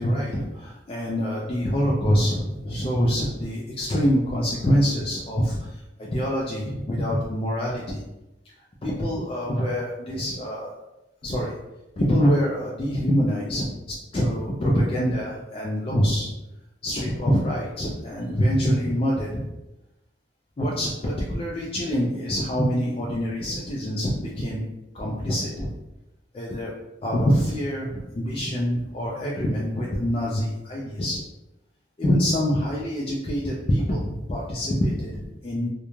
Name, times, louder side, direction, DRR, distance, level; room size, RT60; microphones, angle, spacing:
voice 1, 0.0-5.7 6.0-8.0 8.8-10.7 11.2-11.5 12.0-13.6 14.1-16.3 16.8-19.5 20.6-24.6 24.9-25.7 26.3-26.7 27.0-31.2 32.0-35.7, equal, 30° left, -4 dB, 0.3 m, -25 dB
2.4 x 2.1 x 3.0 m, 0.94 s
head